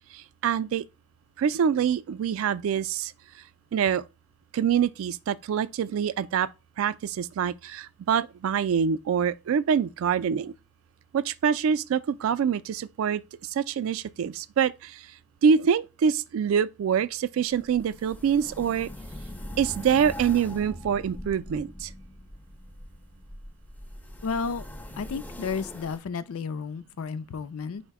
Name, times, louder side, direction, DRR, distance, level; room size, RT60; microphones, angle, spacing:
voice 1, 0.4-0.8 1.4-3.1 3.7-4.0 4.5-6.5 6.8-10.5 11.1-13.2 13.5-15.0 15.4-18.9 19.6-21.9, right 7 dB, 70° right, 0.3 m, -25 dB
sound 1, 17.5-26.0, equal, 10° left, 0.4 m, -42 dB
voice 2, 24.2-24.7 25.0-27.8, left 5 dB, 80° left, 0.4 m, -32 dB
4.8 x 2.1 x 4.6 m
head